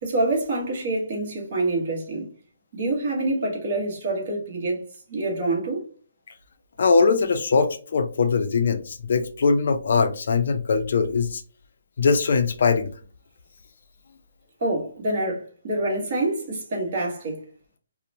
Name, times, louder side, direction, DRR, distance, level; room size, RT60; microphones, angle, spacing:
voice 1, 0.0-2.3 2.7-4.8 5.1-5.9 14.6-17.5, right 2 dB, 40° right, 1.0 m, -26 dB
voice 2, 6.8-11.4 12.0-12.9, left 4 dB, 55° left, 0.4 m, -21 dB
2.9 x 2.0 x 2.5 m
hypercardioid pair, 165°, 0 cm